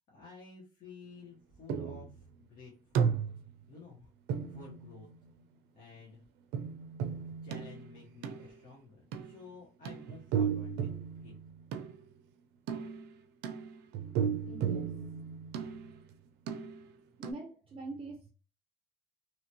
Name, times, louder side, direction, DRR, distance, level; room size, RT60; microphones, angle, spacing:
voice 1, 0.1-3.1 3.7-4.1 4.5-5.1 5.7-6.2 7.4-10.9 11.2-11.3, left 4 dB, 55° left, -5 dB, 1.3 m, -52 dB
sound 1, 1.7-2.2 3.0-3.6 4.3-5.3 6.5-8.6 9.1-9.4 9.9-12.0 12.7-16.1 16.5-17.0 17.2-17.3, right 7 dB, 85° right, 0.5 m, -35 dB
voice 2, 14.5-15.5 17.2-18.3, right 3 dB, 30° right, 2 dB, 0.6 m, -45 dB
2.9 x 2.5 x 2.9 m, 0.36 s
cardioid pair, 110°, 17 cm